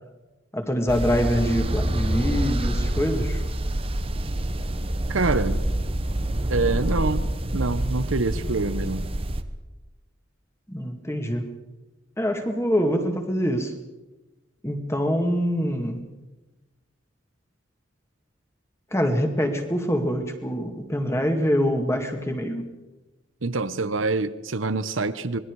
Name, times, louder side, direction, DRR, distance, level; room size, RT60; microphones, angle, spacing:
voice 1, 0.5-3.4 10.7-11.5 12.2-13.7 14.6-16.1 18.9-22.7, equal, 15° left, 2.2 m, -25 dB
sound 1, 0.9-9.4, right 1 dB, 30° right, 1.0 m, -26 dB
voice 2, 5.1-5.6 6.5-7.3 7.5-9.1 23.4-25.4, right 3 dB, 85° right, 1.0 m, -25 dB
26.0 x 21.0 x 4.8 m
head